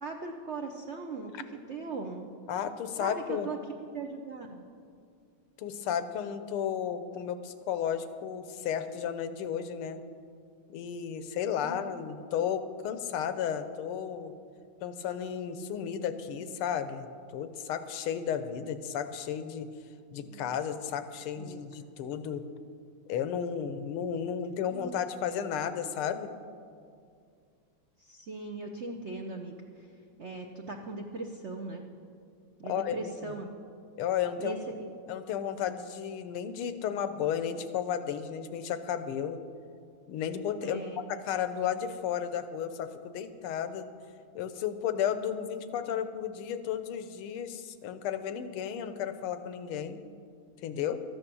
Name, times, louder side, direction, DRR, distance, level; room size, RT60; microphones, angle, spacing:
voice 1, 0.0-2.3 3.0-3.6 3.9-4.7 11.6-11.9 20.2-20.5 21.4-21.6 24.7-25.0 28.0-29.6 30.2-31.8 32.6-33.5 34.4-34.9 40.6-41.1, right 3 dB, 65° right, 3 dB, 0.6 m, -39 dB
voice 2, 2.5-3.5 5.6-10.0 10.7-14.4 14.8-19.7 20.1-22.5 23.1-26.3 32.6-33.3 34.0-34.6 35.1-39.4 40.1-40.8 41.1-43.9 44.3-50.0 50.6-51.0, left 8 dB, 85° left, 11 dB, 1.7 m, -33 dB
13.0 x 9.7 x 6.9 m, 2.3 s
omnidirectional pair, 2.3 m